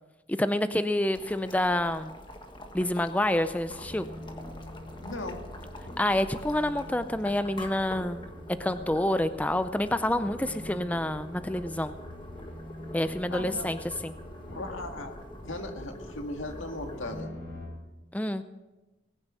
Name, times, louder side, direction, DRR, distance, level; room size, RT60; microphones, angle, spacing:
voice 1, 0.3-2.1 2.7-4.1 6.0-8.2 8.6-11.9 12.9-14.1 18.1-18.4, left 1 dB, 10° left, 11 dB, 0.4 m, -28 dB
Boiling, 1.1-17.2, left 1 dB, 25° left, 1.4 m, -46 dB
sound 1, 3.6-17.7, left 1 dB, 55° left, 5.3 m, -45 dB
voice 2, 5.0-5.4 13.3-13.7 14.5-15.2 15.5-17.3, left 2 dB, 90° left, 4 dB, 1.9 m, -37 dB
19.5 x 10.0 x 6.1 m, 1.1 s
head